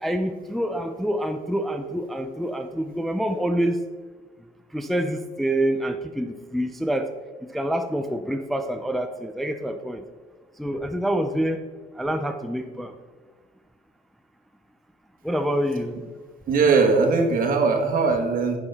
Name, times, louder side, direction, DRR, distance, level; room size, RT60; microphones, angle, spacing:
voice 1, 0.0-3.8 4.7-7.1 7.4-10.0 10.6-11.6 12.0-12.9 15.2-15.9, right 1 dB, ahead, 7 dB, 0.4 m, -26 dB
voice 2, 16.5-18.6, right 4 dB, 55° right, 3 dB, 1.3 m, -20 dB
10.5 x 5.6 x 3.4 m, 1.4 s
cardioid pair, 110°, 17 cm